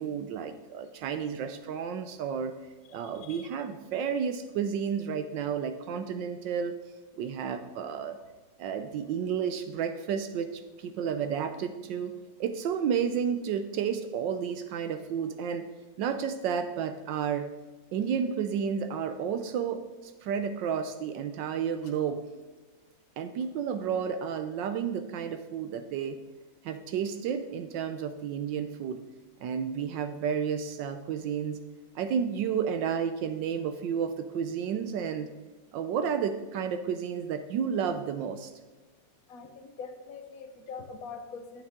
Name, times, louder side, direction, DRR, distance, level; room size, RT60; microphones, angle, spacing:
voice 1, 0.0-2.5 2.9-6.7 7.2-8.2 8.6-12.1 12.4-15.7 16.0-17.5 17.9-22.2 23.2-26.2 26.6-29.0 29.4-31.6 31.9-35.3 35.7-38.5, right 7 dB, 80° right, 8 dB, 1.3 m, -31 dB
voice 2, 3.0-3.5 39.3-41.6, left 5 dB, 55° left, 7 dB, 1.3 m, -43 dB
14.5 x 8.9 x 3.6 m, 1.3 s
omnidirectional pair, 2.0 m